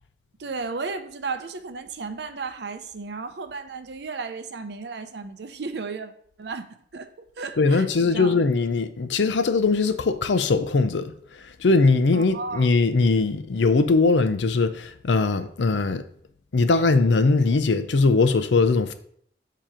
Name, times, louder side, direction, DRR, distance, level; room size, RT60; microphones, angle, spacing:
voice 1, 0.4-6.1 6.4-8.4 12.1-12.7, right 4 dB, 70° right, 0.6 m, -34 dB
voice 2, 7.6-11.1 11.6-16.0 16.5-18.9, left 3 dB, 85° left, 0.5 m, -20 dB
7.4 x 2.9 x 4.9 m
head